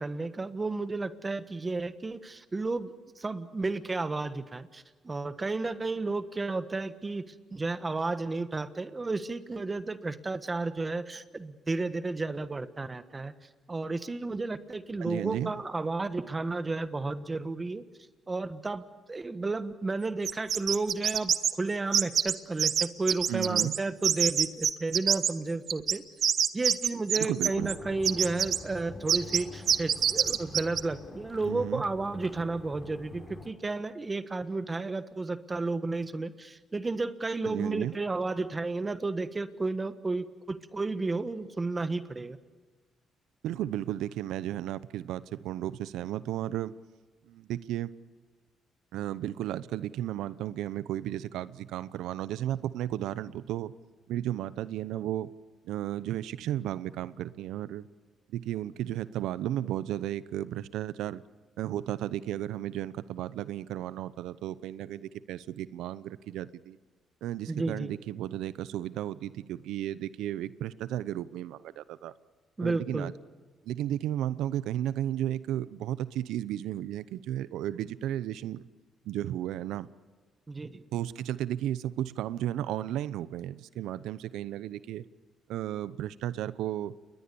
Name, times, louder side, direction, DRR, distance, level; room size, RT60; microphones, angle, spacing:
voice 1, 0.0-7.2 7.5-13.3 13.7-17.8 18.3-26.0 26.5-42.4 67.5-67.9 72.6-73.1 80.5-80.8, right 3 dB, 25° right, 11 dB, 1.3 m, -32 dB
voice 2, 15.0-15.5 23.3-23.7 27.2-27.7 31.5-31.8 37.4-37.9 43.4-46.7 47.3-47.9 48.9-53.7 54.1-55.3 55.6-57.9 58.3-61.2 61.6-66.8 67.2-72.1 72.6-73.1 73.6-78.7 79.0-79.9 80.9-85.0 85.5-86.9, right 12 dB, 85° right, 17 dB, 0.8 m, -34 dB
sound 1, 20.3-21.5 21.9-22.3 22.6-23.8 24.0-25.3 25.7-27.8 28.0-28.6 29.1-29.4 29.7-30.8, right 8 dB, 65° right, 1.1 m, -25 dB
sound 2, 27.5-33.5, left 2 dB, 30° left, 5.0 m, -46 dB
29.0 x 21.5 x 7.0 m, 1.4 s
cardioid pair, 90°, 0 cm